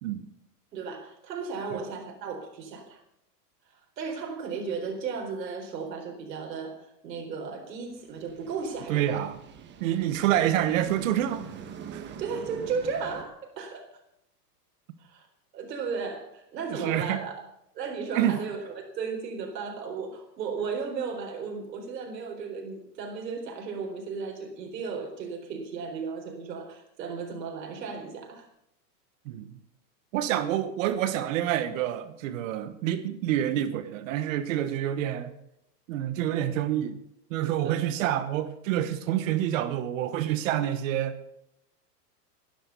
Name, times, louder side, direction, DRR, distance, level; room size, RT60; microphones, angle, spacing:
voice 1, 0.7-3.0 4.0-9.2 12.2-13.9 15.0-15.3 15.5-17.4 17.7-28.5 37.6-37.9, right 5 dB, 85° right, 2 dB, 4.4 m, -35 dB
sound 1, 7.9-13.2, right 7 dB, 20° right, 1.5 m, -44 dB
voice 2, 8.9-9.4 9.8-11.4 11.9-12.1 16.7-17.2 18.1-18.4 29.2-29.6 30.1-35.3 35.9-37.0 37.3-41.2, right 11 dB, 50° right, 11 dB, 1.4 m, -27 dB
15.5 x 11.0 x 6.9 m, 0.78 s
supercardioid pair, 150°, 49 cm